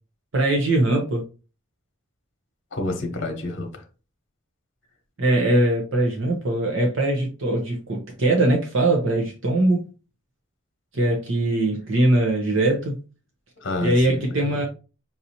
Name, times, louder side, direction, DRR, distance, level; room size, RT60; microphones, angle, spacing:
voice 1, 0.3-1.2 5.2-9.8 10.9-13.0 13.8-14.6, right 1 dB, 65° right, 0.8 m, -21 dB
voice 2, 2.7-3.8 13.6-14.6, left 2 dB, 60° left, 0.9 m, -29 dB
5.7 x 2.7 x 2.8 m
head